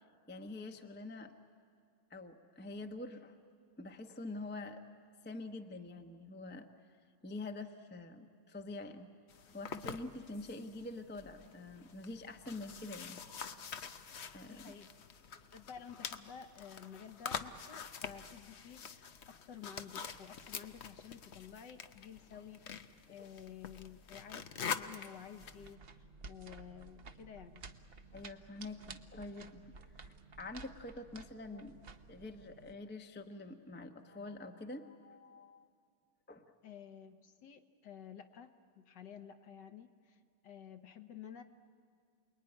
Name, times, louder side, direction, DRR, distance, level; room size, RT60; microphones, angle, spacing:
voice 1, 0.3-1.3 2.1-3.4 3.8-4.9 5.2-6.7 7.2-9.1 9.5-13.4 14.3-14.7 15.3-15.5 28.1-31.8 32.1-35.7 36.3-36.4, left 2 dB, 10° left, 5 dB, 0.5 m, -46 dB
sound 1, 9.3-25.7, left 6 dB, 90° left, 0.5 m, -46 dB
voice 2, 14.5-14.9 15.5-24.5 24.7-27.6 36.6-38.5 38.8-41.4, left 8 dB, 60° left, 7 dB, 1.6 m, -52 dB
sound 2, 25.4-32.7, right 4 dB, 60° right, 0.6 m, -54 dB
28.5 x 21.0 x 9.9 m, 2.2 s
omnidirectional pair, 2.4 m